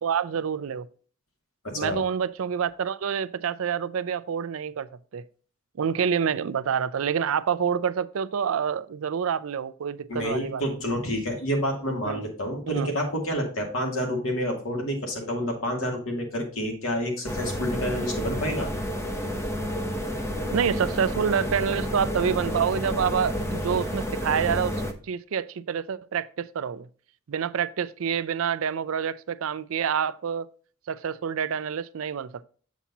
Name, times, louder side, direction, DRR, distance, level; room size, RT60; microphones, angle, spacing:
voice 1, 0.0-0.9 1.8-4.9 5.1-5.2 5.8-10.6 12.1-12.2 12.7-12.9 20.5-24.8 25.1-26.9 27.3-30.5 30.9-32.4, right 7 dB, 70° right, 0.4 m, -27 dB
voice 2, 1.6-2.0 10.1-18.7, equal, 70° left, 2.3 m, -29 dB
sound 1, 17.2-24.9, equal, 15° left, 0.7 m, -30 dB
7.2 x 7.1 x 2.7 m
head